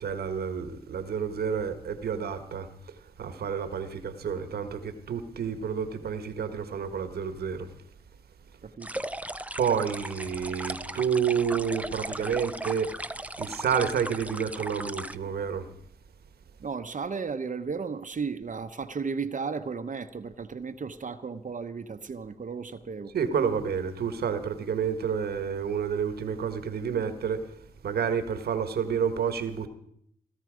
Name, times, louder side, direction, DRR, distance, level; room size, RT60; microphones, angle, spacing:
voice 1, 0.0-2.7 3.2-7.7 9.6-12.9 13.4-15.7 23.1-27.4 27.8-29.7, right 7 dB, 90° right, 1.4 m, -29 dB
voice 2, 8.6-9.0 16.6-23.1, right 5 dB, 55° right, 1.0 m, -34 dB
sound 1, 8.8-15.2, right 1 dB, 10° right, 0.7 m, -37 dB
18.0 x 12.5 x 5.1 m
cardioid pair, 45°, 16 cm